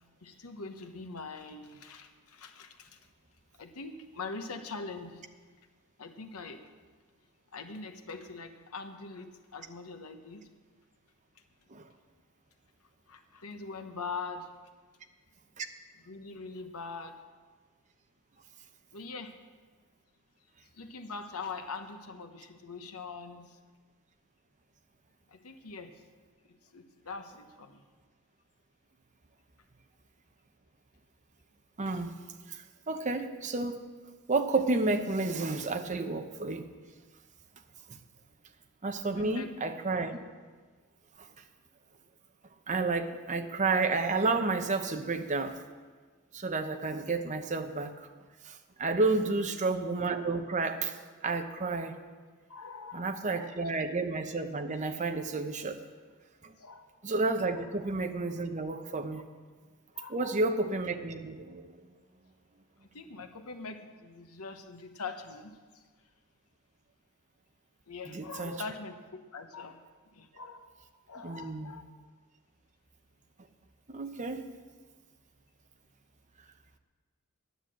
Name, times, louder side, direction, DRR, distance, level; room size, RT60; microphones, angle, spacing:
voice 1, 0.2-3.0 3.6-5.2 6.0-6.6 7.5-10.4 13.1-14.5 16.0-17.2 18.9-19.3 20.7-23.6 25.3-25.9 26.7-27.8 39.1-39.5 49.1-49.5 52.5-53.6 56.6-56.9 57.5-57.7 59.9-60.4 62.9-65.5 67.9-69.8 70.1-70.7 71.1-71.8, left 4 dB, 85° left, 7 dB, 1.1 m, -43 dB
voice 2, 31.8-32.1 32.5-33.8 34.3-36.7 38.8-40.2 41.2-41.3 42.7-45.6 46.3-48.1 48.4-51.0 51.2-51.9 52.9-55.8 56.4-56.5 57.0-59.2 60.1-61.9 68.1-68.6 71.2-71.7 73.9-74.4, right 3 dB, 35° right, 6 dB, 0.8 m, -31 dB
10.5 x 9.8 x 7.6 m, 1.5 s
head